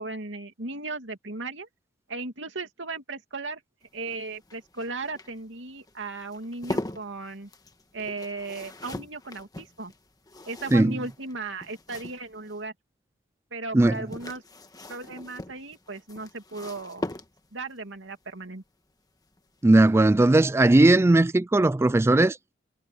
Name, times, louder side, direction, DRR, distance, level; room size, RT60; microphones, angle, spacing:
voice 1, 0.0-1.7 2.1-3.6 3.9-7.5 7.9-9.9 10.4-12.7 13.5-14.4 14.9-17.0 17.5-18.6, right 3 dB, 85° right, 2.6 m, -36 dB
sound 1, 3.8-12.6 13.8-17.7 19.3-19.6 19.9-20.0, left 1 dB, 20° left, 1.5 m, -40 dB
voice 2, 13.7-14.0 19.6-22.4, right 2 dB, 15° right, 0.3 m, -18 dB
head